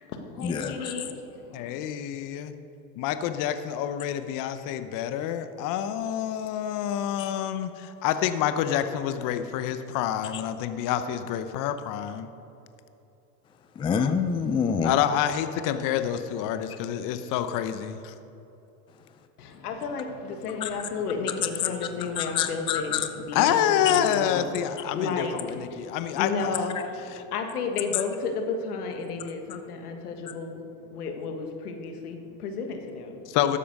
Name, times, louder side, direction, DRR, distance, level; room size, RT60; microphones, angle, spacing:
voice 1, 0.0-1.8 19.4-33.4, left 4 dB, 90° left, 5 dB, 1.7 m, -33 dB
voice 2, 1.5-2.5 3.0-12.3 14.8-18.1 23.3-25.1 25.6-26.3 33.3-33.6, left 10 dB, 45° left, 10 dB, 0.8 m, -27 dB
voice 3, 13.8-14.9 20.6-20.7 22.2-23.0, left 7 dB, 15° left, 8 dB, 0.4 m, -26 dB
12.5 x 8.5 x 5.4 m, 2.9 s
supercardioid pair, 115°, 44 cm